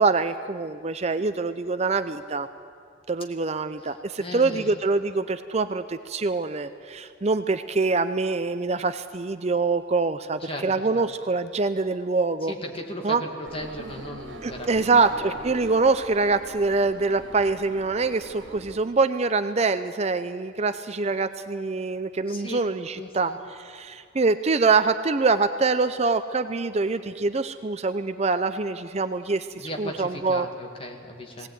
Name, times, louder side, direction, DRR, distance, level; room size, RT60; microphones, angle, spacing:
voice 1, 0.0-2.5 3.1-12.5 13.0-13.2 14.4-30.5 31.4-31.5, right 3 dB, 35° right, 11 dB, 0.5 m, -25 dB
voice 2, 4.2-4.7 10.4-11.0 12.4-14.7 14.9-15.3 22.3-22.6 23.0-23.4 29.6-31.5, left 1 dB, 30° left, 2 dB, 2.1 m, -36 dB
sound 1, 13.4-18.8, right 2 dB, 75° right, 2.0 m, -42 dB
19.5 x 18.0 x 9.3 m, 2.2 s
head